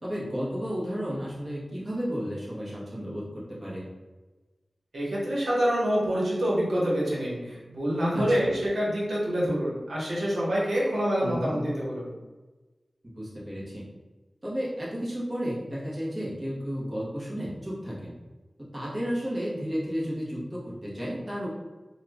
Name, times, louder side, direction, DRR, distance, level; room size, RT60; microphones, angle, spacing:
voice 1, 0.0-3.8 8.1-8.2 11.2-11.6 13.2-13.8 14.4-18.1 18.7-21.5, equal, 30° right, -7 dB, 1.2 m, -32 dB
voice 2, 4.9-12.1, equal, 85° right, -6 dB, 1.1 m, -26 dB
2.8 x 2.4 x 3.5 m, 1.2 s
wide cardioid pair, 95°, 0 cm